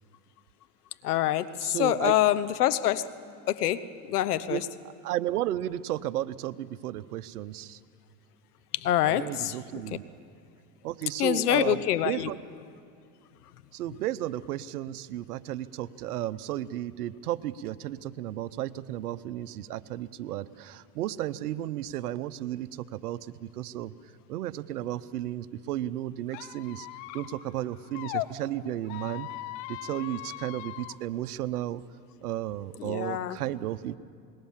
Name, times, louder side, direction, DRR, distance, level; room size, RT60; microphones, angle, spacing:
voice 1, 1.0-3.0 3.5-4.7 8.7-9.6 9.9-10.0 11.2-12.3 32.8-33.4, left 12 dB, 90° left, 14 dB, 1.1 m, -26 dB
voice 2, 1.6-2.2 4.5-4.6 5.0-7.8 9.1-10.1 10.8-12.4 13.7-23.9 24.3-26.9 27.1-29.3 29.7-31.8 32.2-34.0, right 13 dB, 90° right, 15 dB, 0.9 m, -33 dB
Squeak, 26.3-28.3 28.8-30.9, left 16 dB, 60° left, 1.1 m, -39 dB
26.5 x 21.0 x 7.4 m, 2.4 s
hypercardioid pair, 105°, 45 cm